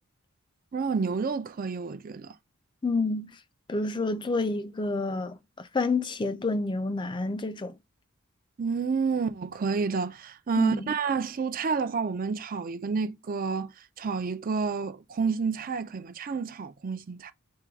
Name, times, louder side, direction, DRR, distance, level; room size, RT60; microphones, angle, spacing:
voice 1, 0.7-2.4 8.6-17.3, right 5 dB, 40° right, 0.4 m, -29 dB
voice 2, 2.8-3.3 3.7-7.7 10.5-10.9, left 3 dB, 20° left, 0.4 m, -29 dB
4.5 x 2.3 x 4.6 m
head